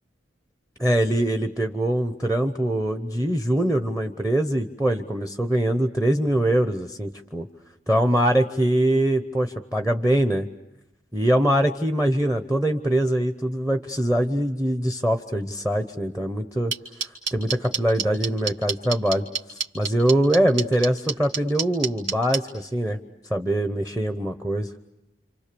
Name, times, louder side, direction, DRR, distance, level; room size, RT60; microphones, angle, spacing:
voice 1, 0.8-7.5 7.9-10.5 11.1-16.7 17.0-19.2 19.7-23.0 23.3-24.7, right 1 dB, 10° right, 7 dB, 0.9 m, -23 dB
sound 1, 16.7-22.4, right 6 dB, 85° right, 2.3 m, -26 dB
28.5 x 27.0 x 6.9 m, 0.94 s
head